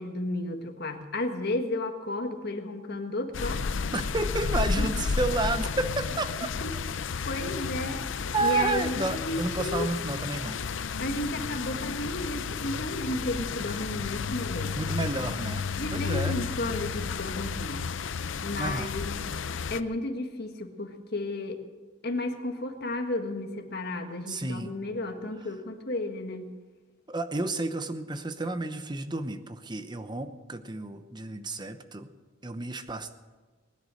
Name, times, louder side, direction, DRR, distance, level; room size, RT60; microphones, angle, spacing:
voice 1, 0.0-3.6 4.8-4.9 6.6-6.7 7.2-8.0 8.4-9.9 11.0-14.8 15.8-17.8 18.4-19.1 19.7-21.6 22.0-26.5, left 2 dB, 55° left, 5 dB, 1.6 m, -33 dB
sound 1, 3.3-19.8, left 5 dB, 70° left, 0.5 m, -32 dB
voice 2, 3.9-6.3 8.3-10.6 14.7-16.4 18.6-18.9 24.2-24.7 27.1-32.1 32.4-33.2, right 2 dB, 20° right, 10 dB, 0.8 m, -31 dB
20.0 x 10.0 x 6.3 m, 1.3 s
head